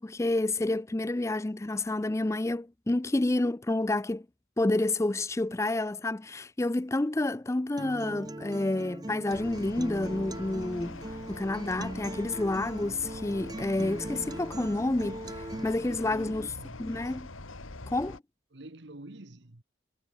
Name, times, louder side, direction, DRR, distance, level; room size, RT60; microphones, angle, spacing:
voice 1, 0.0-4.3 4.6-16.5 16.8-17.3 17.9-18.2, left 2 dB, 15° left, 0.4 m, -29 dB
Acoustic guitar, 7.8-15.8, right 1 dB, 20° right, 0.8 m, -40 dB
sound 1, 9.3-18.2, left 2 dB, 85° left, 2.3 m, -44 dB
voice 2, 15.5-17.0 18.5-19.6, right 1 dB, 60° right, 1.5 m, -47 dB
head